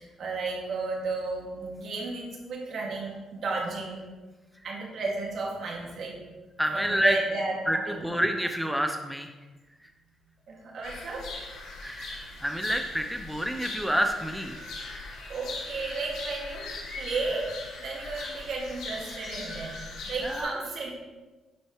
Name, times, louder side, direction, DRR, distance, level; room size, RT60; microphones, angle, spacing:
voice 1, 0.0-4.0 4.6-6.2 6.7-8.1 10.5-11.3 15.3-19.8 20.1-21.0, right 3 dB, 65° right, -2 dB, 1.9 m, -33 dB
voice 2, 6.6-7.1 7.7-9.3 11.8-14.7 20.2-20.5, equal, ahead, 4 dB, 0.5 m, -28 dB
sound 1, 10.8-20.4, left 3 dB, 75° left, 1.6 m, -40 dB
10.0 x 4.4 x 3.0 m, 1.2 s
cardioid pair, 90°, 0 cm